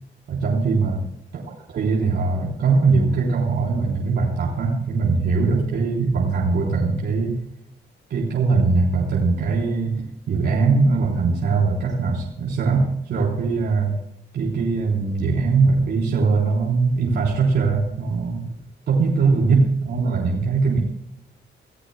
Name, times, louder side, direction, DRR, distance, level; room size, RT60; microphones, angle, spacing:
voice 1, 0.3-1.0 1.3-1.4 1.7-7.4 8.1-13.9 14.3-18.4 18.9-20.8, right 4 dB, 70° right, -4 dB, 3.8 m, -21 dB
28.0 x 15.5 x 2.2 m, 0.77 s
wide cardioid pair, 180°, 19 cm